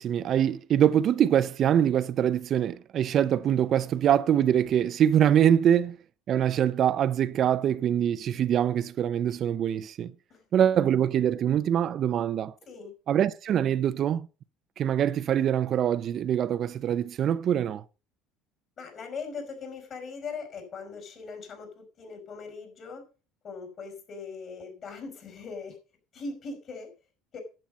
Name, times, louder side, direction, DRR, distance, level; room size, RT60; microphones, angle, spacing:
voice 1, 0.0-6.0 6.3-10.1 10.5-12.5 13.1-14.3 14.8-17.8, right 10 dB, 45° right, 0.5 m, -24 dB
voice 2, 18.8-23.0 23.4-25.8 26.1-26.9 27.3-27.4, left 4 dB, 40° left, 5.4 m, -40 dB
10.5 x 8.8 x 5.4 m
cardioid pair, 125°, 0 cm